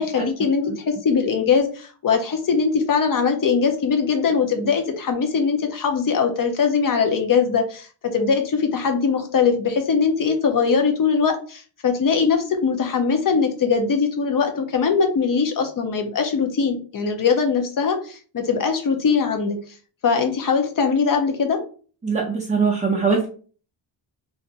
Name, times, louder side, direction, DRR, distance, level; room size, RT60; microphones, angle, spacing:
voice 1, 0.0-19.6 20.0-21.6, left 5 dB, 45° left, 5 dB, 0.7 m, -21 dB
voice 2, 22.0-23.3, right 5 dB, 15° right, -2 dB, 0.4 m, -21 dB
2.5 x 2.5 x 3.9 m, 0.40 s
wide cardioid pair, 155°, 46 cm